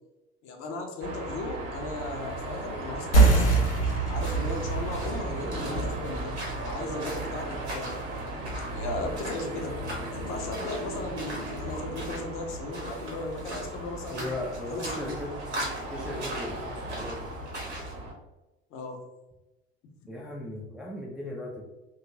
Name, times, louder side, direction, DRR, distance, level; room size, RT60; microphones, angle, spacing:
voice 1, 0.4-3.6 4.1-6.4 6.6-7.9 8.7-9.7 10.1-14.3 14.7-15.2 15.6-15.7 18.7-19.0, left 2 dB, 40° left, 3 dB, 0.6 m, -36 dB
Car passing by / Traffic noise roadway noise / Engine, 1.0-18.1, right 1 dB, 55° right, 0.9 m, -37 dB
sound 1, 3.1-8.3, right 3 dB, 90° left, 0.6 m, -26 dB
sound 2, 4.1-18.0, right 1 dB, 85° right, 0.8 m, -41 dB
voice 2, 14.1-15.3 15.9-17.3 20.1-21.6, left 1 dB, ahead, -3 dB, 0.4 m, -37 dB
2.9 x 2.3 x 2.7 m, 1.0 s
figure-of-eight pair, 60°, 33 cm